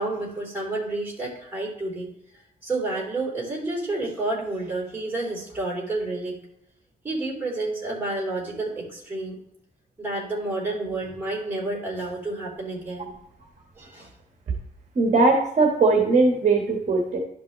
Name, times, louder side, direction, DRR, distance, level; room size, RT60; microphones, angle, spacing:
voice 1, 0.0-2.1 2.6-6.4 7.0-9.4 10.0-13.1 13.8-14.1, right 2 dB, 10° right, -4 dB, 3.1 m, -30 dB
voice 2, 14.9-17.2, right 3 dB, 45° right, 0 dB, 1.3 m, -19 dB
11.5 x 5.3 x 3.0 m, 0.76 s
wide cardioid pair, 165°, 16 cm